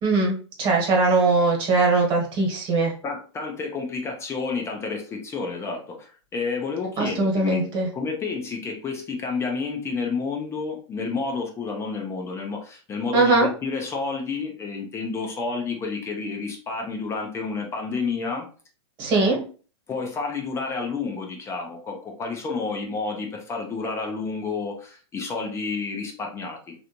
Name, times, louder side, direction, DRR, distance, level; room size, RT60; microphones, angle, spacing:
voice 1, 0.0-2.9 7.0-7.9 13.1-13.5 19.0-19.4, right 3 dB, 30° right, -1 dB, 1.4 m, -21 dB
voice 2, 3.0-18.5 19.2-19.4 19.9-26.7, left 4 dB, 20° left, 1 dB, 0.6 m, -30 dB
3.2 x 2.6 x 2.9 m, 0.39 s
hypercardioid pair, 135°, 15 cm